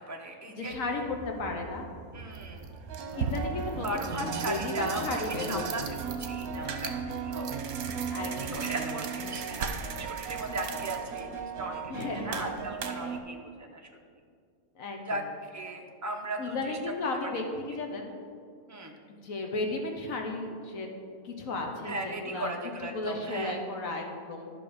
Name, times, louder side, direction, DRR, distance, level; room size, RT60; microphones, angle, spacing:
voice 1, 0.0-0.8 2.1-2.7 3.8-6.9 7.2-7.6 8.2-13.9 15.1-15.3 15.5-16.8 17.3-17.4 18.7-19.0 21.8-23.6, right 2 dB, 15° right, 2 dB, 0.7 m, -37 dB
voice 2, 0.6-1.9 2.2-2.3 3.1-6.0 8.1-8.7 11.9-12.7 13.0-13.1 14.7-15.2 16.4-18.2 19.1-20.9 21.2-22.5 22.9-24.5, left 2 dB, 65° left, 2 dB, 1.4 m, -34 dB
sound 1, 0.7-8.5, right 3 dB, 45° right, 1.3 m, -47 dB
sound 2, 1.5-1.6 2.3-13.2, right 6 dB, 75° right, 1.3 m, -35 dB
12.0 x 5.8 x 5.1 m, 2.3 s
omnidirectional pair, 1.5 m